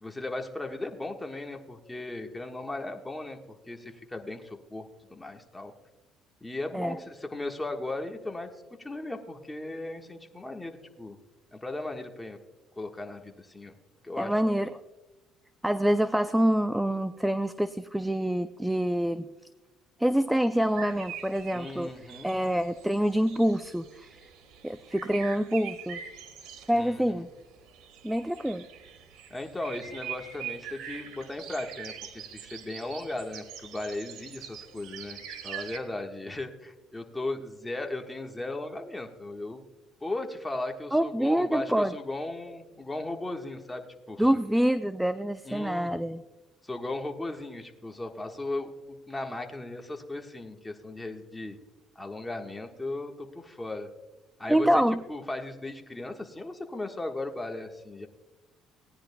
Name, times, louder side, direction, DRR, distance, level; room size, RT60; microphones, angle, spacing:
voice 1, 0.0-3.4 3.7-5.7 6.4-8.5 8.8-11.2 11.5-12.4 12.8-13.7 14.0-14.4 21.5-22.3 26.7-27.0 29.3-39.6 40.0-44.3 45.4-45.9 46.6-51.6 51.9-53.9 54.4-54.7 55.1-58.1, left 2 dB, 10° left, 3 dB, 1.4 m, -37 dB
voice 2, 14.2-14.8 15.6-19.3 20.0-21.9 22.2-24.1 24.6-26.0 26.7-27.3 28.0-28.7 40.9-41.9 44.2-46.2 54.5-55.0, equal, 5° right, 11 dB, 0.4 m, -26 dB
sound 1, 20.5-35.8, right 9 dB, 75° right, 1.6 m, -44 dB
18.0 x 10.0 x 2.2 m, 1.1 s
cardioid pair, 110°, 0 cm